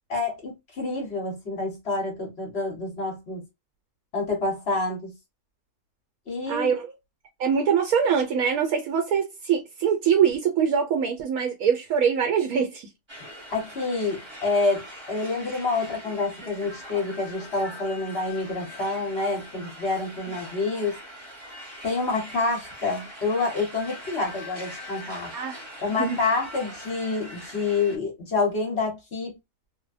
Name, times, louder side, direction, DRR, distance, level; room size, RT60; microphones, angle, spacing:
voice 1, 0.1-3.4 4.1-5.1 6.3-6.7 13.5-21.0 21.8-25.3 25.8-29.4, left 3 dB, 45° left, 1.1 m, -28 dB
voice 2, 6.5-6.9 7.4-12.9 20.3-20.4 25.3-25.6 26.0-26.2, right 7 dB, 75° right, 1.0 m, -23 dB
sound 1, 13.1-28.0, equal, 20° right, 0.8 m, -42 dB
2.7 x 2.1 x 2.4 m
omnidirectional pair, 1.6 m